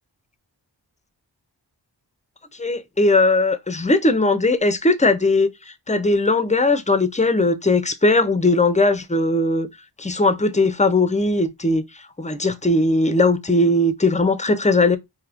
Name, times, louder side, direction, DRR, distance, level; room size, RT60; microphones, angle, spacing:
voice 1, 2.6-5.5 5.9-9.7 10.0-11.8 12.2-15.0, left 2 dB, 15° left, 0.5 m, -19 dB
4.7 x 2.8 x 2.4 m
wide cardioid pair, 40°, 44 cm